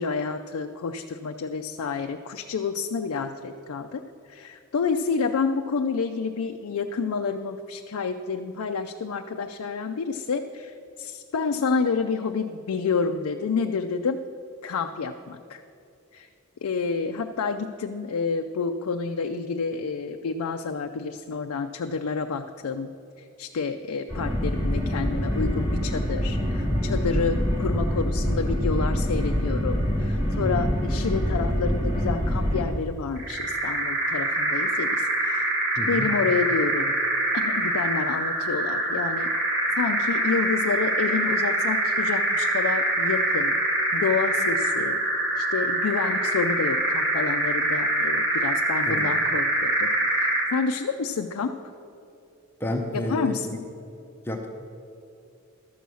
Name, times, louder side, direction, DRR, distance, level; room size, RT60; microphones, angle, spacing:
voice 1, 0.0-4.0 4.3-14.2 14.6-15.6 16.1-16.3 16.6-22.9 23.2-35.5 35.9-36.9 37.3-39.3 39.7-43.6 43.9-45.0 45.4-49.9 50.2-51.6 52.9-53.6, left 5 dB, 75° left, 5 dB, 0.4 m, -29 dB
sound 1, 24.1-32.6, equal, 10° right, 2.3 m, -25 dB
sound 2, 33.2-50.6, right 1 dB, 55° right, 2.0 m, -25 dB
voice 2, 35.8-36.1 48.9-49.1 52.6-53.6 54.3-54.5, left 1 dB, 10° left, 2 dB, 0.7 m, -30 dB
12.5 x 6.8 x 6.2 m, 2.6 s
head